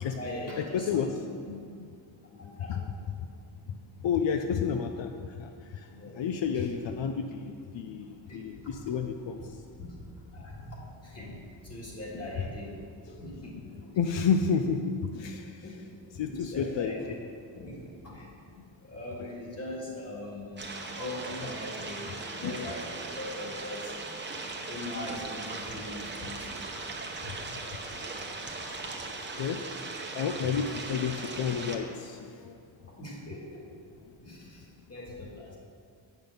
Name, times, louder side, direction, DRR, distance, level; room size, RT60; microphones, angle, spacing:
voice 1, 0.0-1.2 2.2-2.8 5.9-6.2 6.5-6.7 8.3-8.4 8.8-8.9 9.8-10.1 10.3-14.0 15.6-15.9 16.2-17.1 17.5-18.3 18.8-23.9 24.7-26.5 32.9-33.7 34.2-35.6, left 1 dB, 35° left, -3 dB, 2.1 m, -41 dB
voice 2, 0.7-1.9 2.7-2.9 3.7-3.8 4.0-9.4 11.3-11.4 12.1-12.3 14.0-15.6 16.2-17.0 22.4-22.6 27.9-28.0 28.4-28.9 29.4-29.9 30.1-32.5, left 6 dB, 80° left, 5 dB, 0.6 m, -31 dB
sound 1, 20.6-31.8, right 3 dB, 25° right, 0.8 m, -39 dB
8.7 x 6.0 x 6.7 m, 2.3 s
wide cardioid pair, 170°, 44 cm